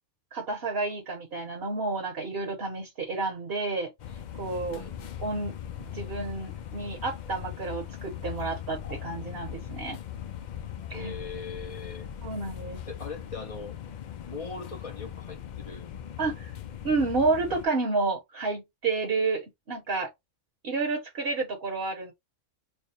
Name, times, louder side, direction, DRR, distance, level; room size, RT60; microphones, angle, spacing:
voice 1, 0.3-3.9 4.4-4.8 5.2-5.6 5.9-10.0 10.9-11.1 12.2-12.8 16.2-16.5 16.8-20.1 20.6-22.1, right 3 dB, 55° right, 1.1 m, -30 dB
sound 1, 4.0-17.7, left 10 dB, 70° left, 0.4 m, -40 dB
voice 2, 10.9-12.1 12.9-13.8 14.3-15.9 16.3-16.4, left 4 dB, 35° left, 0.7 m, -40 dB
3.3 x 2.1 x 4.2 m
omnidirectional pair, 1.3 m